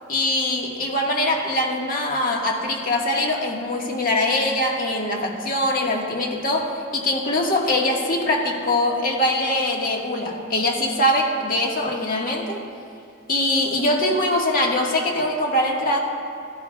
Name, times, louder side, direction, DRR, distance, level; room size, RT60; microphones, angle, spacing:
voice 1, 0.1-12.6 13.3-16.0, left 1 dB, 45° left, -1 dB, 1.6 m, -22 dB
16.0 x 13.5 x 2.3 m, 2.5 s
head